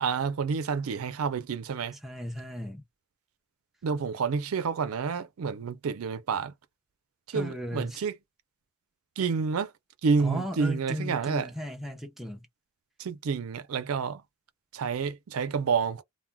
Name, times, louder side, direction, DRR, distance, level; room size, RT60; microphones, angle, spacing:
voice 1, 0.0-2.0 3.8-6.5 7.3-8.1 9.2-9.7 10.0-11.5 13.0-14.2 14.7-16.0, right 5 dB, 85° right, 0.4 m, -29 dB
voice 2, 2.0-2.8 7.3-8.0 10.2-12.5, equal, ahead, 0.5 m, -35 dB
2.2 x 2.1 x 3.3 m
head